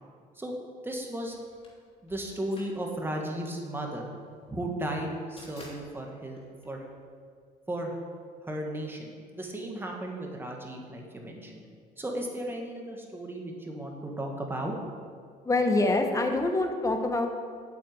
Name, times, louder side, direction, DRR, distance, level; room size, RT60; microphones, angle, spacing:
voice 1, 0.8-1.4 2.0-4.1 4.5-6.4 6.6-6.9 7.7-8.0 8.4-11.5 12.0-14.7, right 1 dB, 15° right, 0 dB, 2.0 m, -35 dB
sound 1, 1.3-7.4, left 1 dB, 35° left, 3.0 m, -53 dB
voice 2, 15.4-17.3, left 2 dB, 20° left, 4 dB, 1.4 m, -25 dB
8.5 x 8.3 x 8.0 m, 2.1 s
cardioid pair, 110°, 17 cm